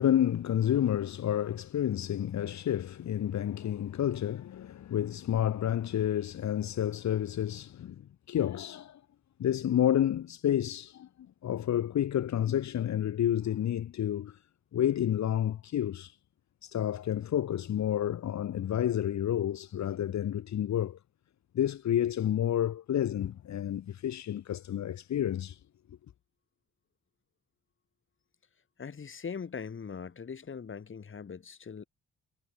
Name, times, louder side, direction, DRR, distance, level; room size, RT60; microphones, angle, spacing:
voice 1, 0.0-9.0 9.4-11.1 11.4-14.4 14.7-16.2 16.6-21.0 21.5-25.6, left 11 dB, 65° left, 3.0 m, -30 dB
voice 2, 28.8-31.8, left 6 dB, 40° left, 7.6 m, -41 dB
cardioid pair, 90°, 30 cm